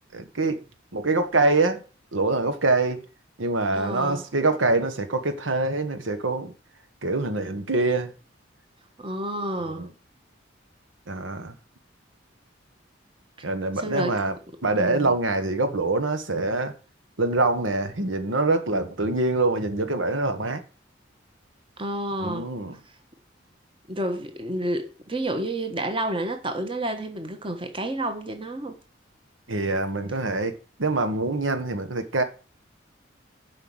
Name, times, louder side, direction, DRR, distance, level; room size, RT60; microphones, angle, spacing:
voice 1, 0.1-0.6 0.9-1.8 2.1-3.0 3.4-6.5 7.0-8.1 9.6-9.9 11.1-11.5 13.4-14.4 14.6-16.7 17.2-20.6 22.2-22.8 29.5-32.2, right 2 dB, 80° right, 1.3 m, -25 dB
voice 2, 3.7-4.2 9.0-9.9 13.4-13.5 13.8-14.1 14.8-15.1 21.8-22.5 23.9-28.8, right 1 dB, 25° right, 1.3 m, -30 dB
7.6 x 5.8 x 7.8 m
head